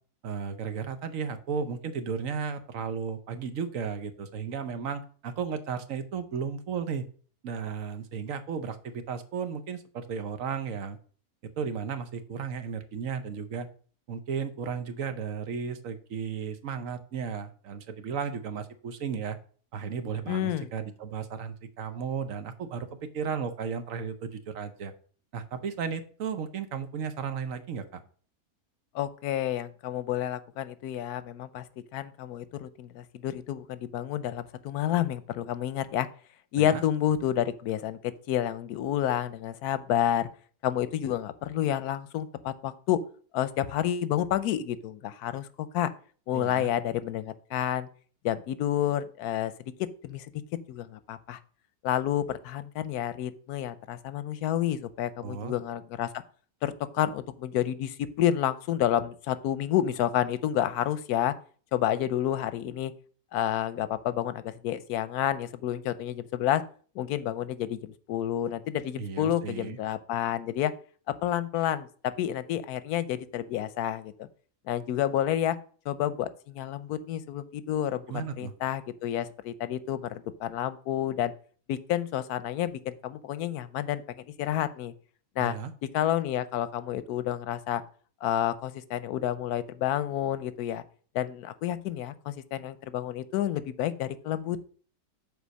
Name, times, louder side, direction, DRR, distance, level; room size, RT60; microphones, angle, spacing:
voice 1, 0.2-7.0 7.4-11.0 11.6-13.7 14.1-19.4 19.7-22.9 23.1-24.9 25.3-28.0 36.6-36.8 46.3-46.7 55.2-55.6 69.0-69.8 78.1-78.5 85.4-85.7, right 6 dB, 65° right, 9 dB, 1.1 m, -34 dB
voice 2, 20.3-20.7 28.9-31.7 31.9-36.1 36.5-40.3 40.6-43.0 43.3-45.9 46.3-47.9 48.2-49.7 50.0-50.3 50.7-51.4 51.8-56.1 56.6-61.3 61.7-62.9 63.3-66.6 66.9-70.7 71.2-71.9 72.2-74.3 74.7-75.6 75.9-81.3 81.7-84.9 85.4-85.6 85.9-87.8 88.2-90.8 91.1-94.6, left 11 dB, 85° left, 14 dB, 1.2 m, -29 dB
6.9 x 4.4 x 6.3 m, 0.43 s
omnidirectional pair, 1.6 m